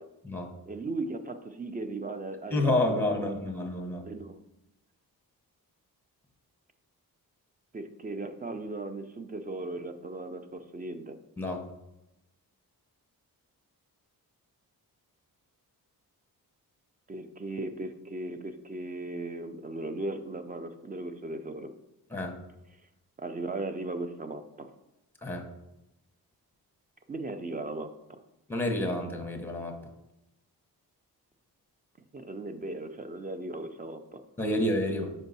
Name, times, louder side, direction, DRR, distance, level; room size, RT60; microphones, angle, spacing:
voice 1, 0.7-3.3 4.1-4.4 7.7-11.2 17.1-21.7 23.2-24.7 27.1-28.2 32.1-34.2, right 2 dB, 25° right, 8 dB, 0.4 m, -37 dB
voice 2, 2.5-4.0 11.4-11.6 22.1-22.4 25.2-25.5 28.5-29.8 34.4-35.1, left 1 dB, 5° left, 3 dB, 0.8 m, -29 dB
5.3 x 4.5 x 4.0 m, 0.90 s
wide cardioid pair, 135°, 37 cm